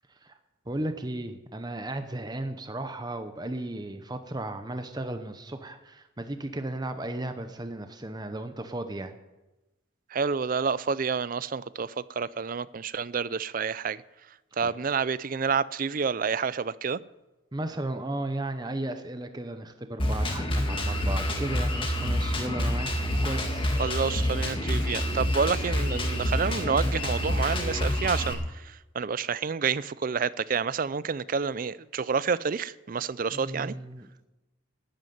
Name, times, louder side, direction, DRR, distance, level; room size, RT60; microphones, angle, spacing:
voice 1, 0.7-9.1 14.6-14.7 17.5-22.9 23.2-23.8 33.3-34.3, right 1 dB, 20° right, 0.8 m, -35 dB
voice 2, 10.1-14.0 14.6-17.0 23.8-33.8, right 5 dB, 45° right, 0.4 m, -29 dB
Drum kit, 20.0-28.3, left 1 dB, 25° left, 1.9 m, -27 dB
12.5 x 9.3 x 9.3 m
head